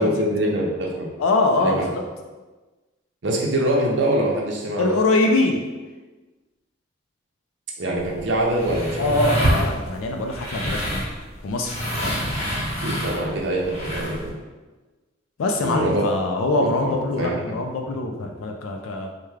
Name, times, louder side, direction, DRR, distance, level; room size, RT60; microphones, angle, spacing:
voice 1, 0.0-1.1 1.6-1.9 3.2-5.0 7.8-9.2 12.8-14.3 15.6-16.1 16.8-17.6, right 1 dB, 60° right, -2 dB, 0.6 m, -24 dB
voice 2, 1.2-2.0 4.8-5.6 9.0-11.1 11.4-12.1 15.4-19.1, left 2 dB, 85° left, 3 dB, 0.4 m, -23 dB
sound 1, 8.0-14.3, equal, 35° left, 1.0 m, -27 dB
3.4 x 2.2 x 3.2 m, 1.2 s
head